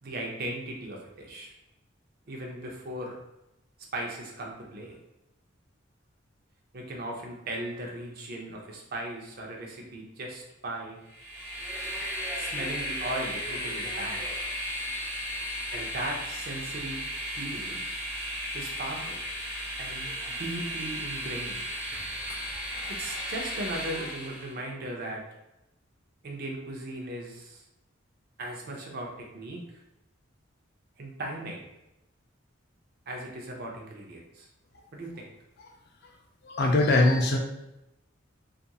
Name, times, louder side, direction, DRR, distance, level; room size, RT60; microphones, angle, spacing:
voice 1, 0.0-1.5 2.3-3.2 3.9-5.0 6.7-11.0 12.4-14.2 15.7-17.8 18.5-19.2 19.8-21.6 22.9-25.2 26.2-27.6 28.4-29.6 31.0-31.6 33.1-34.5 34.9-35.3, right 1 dB, 50° right, 0 dB, 0.5 m, -37 dB
Train, 11.1-24.6, equal, 10° right, 0.6 m, -35 dB
voice 2, 36.4-37.4, left 2 dB, 55° left, 2 dB, 0.4 m, -21 dB
2.8 x 2.5 x 2.2 m, 0.90 s
head